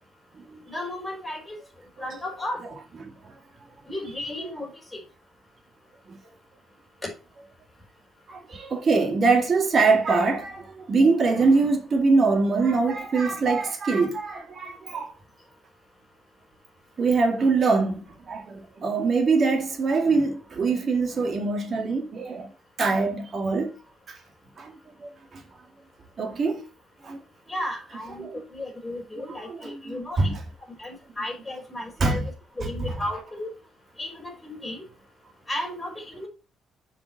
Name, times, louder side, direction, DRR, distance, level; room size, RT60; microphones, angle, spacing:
voice 1, 0.7-1.6 2.0-2.6 3.9-5.0 7.0-7.1 27.5-30.3 30.8-32.2 32.5-33.5 34.0-34.8 35.5-36.3, left 1 dB, 15° left, 4.7 m, -34 dB
voice 2, 8.3-15.1 17.0-22.5 22.8-23.8 24.1-24.2 24.6-24.7 25.0-25.1 26.2-26.6 27.0-27.2 28.2-28.3 29.5-30.3 32.0-32.2 32.8-32.9, right 4 dB, 45° right, 2.2 m, -23 dB
6.8 x 5.7 x 4.2 m
cardioid pair, 90°, 0 cm